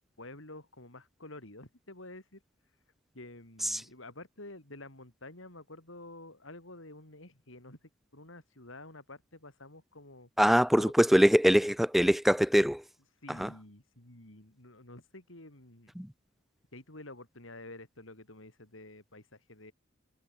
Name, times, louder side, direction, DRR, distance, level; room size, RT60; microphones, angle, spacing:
voice 1, 0.2-2.4 3.1-7.8 8.1-10.3 10.8-10.9 13.2-15.9 16.7-19.7, left 2 dB, 70° left, 4.8 m, -49 dB
voice 2, 10.4-12.8 13.4-13.5 16.0-16.1, equal, ahead, 0.3 m, -23 dB
head